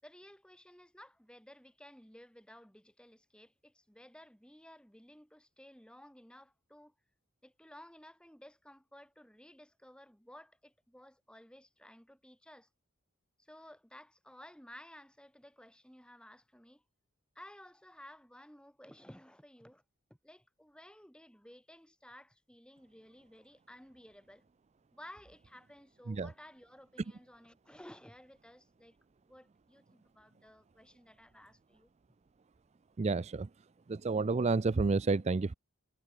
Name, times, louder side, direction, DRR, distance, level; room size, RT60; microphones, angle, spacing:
voice 1, 0.0-6.9 7.4-12.7 13.4-16.8 17.3-19.8 20.2-24.4 24.9-29.0 29.3-31.9, left 1 dB, 5° left, 6.7 m, -56 dB
voice 2, 33.0-33.5 33.9-35.5, right 3 dB, 30° right, 0.4 m, -30 dB
head